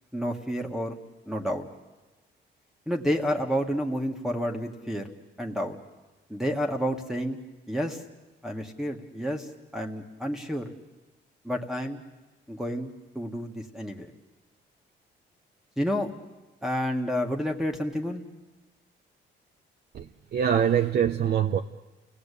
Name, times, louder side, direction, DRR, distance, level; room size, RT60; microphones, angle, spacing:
voice 1, 0.1-1.0 1.3-1.7 2.9-5.1 5.4-5.8 6.3-7.4 7.7-8.0 8.4-10.7 11.4-12.0 12.5-14.1 15.8-16.1 16.6-18.2, equal, ahead, 0 dB, 1.9 m, -30 dB
voice 2, 19.9-21.6, right 9 dB, 55° right, 5 dB, 0.9 m, -24 dB
29.5 x 17.5 x 8.5 m, 1.2 s
cardioid pair, 90°, 20 cm